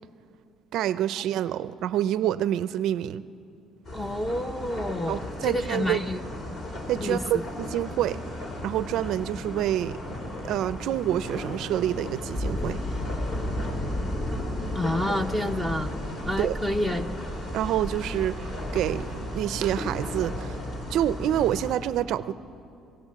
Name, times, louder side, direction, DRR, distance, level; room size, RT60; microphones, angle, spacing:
voice 1, 0.7-3.2 5.1-6.0 6.9-8.2 8.6-10.0 10.4-12.8 16.4-16.6 17.5-20.6 20.9-22.3, right 11 dB, 60° right, 14 dB, 0.5 m, -27 dB
sound 1, 3.8-21.7, left 1 dB, 35° left, 3.4 m, -34 dB
voice 2, 3.9-6.2 7.0-7.4 14.7-15.9 16.2-17.1, left 1 dB, 5° left, 9 dB, 0.8 m, -29 dB
26.0 x 16.5 x 7.5 m, 2.6 s
cardioid pair, 175°, 0 cm